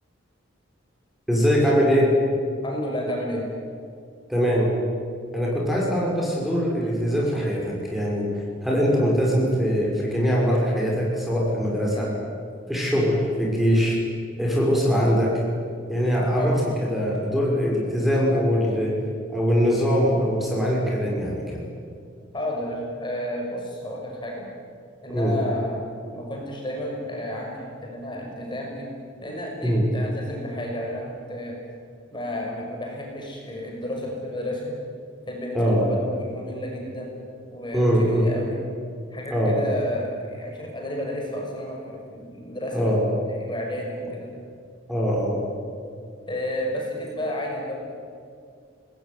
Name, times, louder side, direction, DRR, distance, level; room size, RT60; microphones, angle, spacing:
voice 1, 1.3-2.1 4.3-4.7 5.3-8.3 8.6-12.1 12.7-14.0 14.4-15.3 15.9-18.9 19.3-21.6 25.1-25.4 29.6-29.9 35.5-35.9 37.7-38.3 39.3-39.6 42.7-43.0 44.9-45.4, equal, ahead, -3 dB, 6.0 m, -22 dB
voice 2, 2.6-3.4 11.9-12.1 16.3-16.5 22.3-24.5 25.0-25.8 26.1-28.9 29.2-31.5 32.1-34.7 35.3-37.2 37.5-38.6 39.1-42.9 43.4-44.3 46.3-47.7, left 1 dB, 25° left, -1 dB, 6.1 m, -31 dB
27.0 x 20.5 x 9.6 m, 2.4 s
head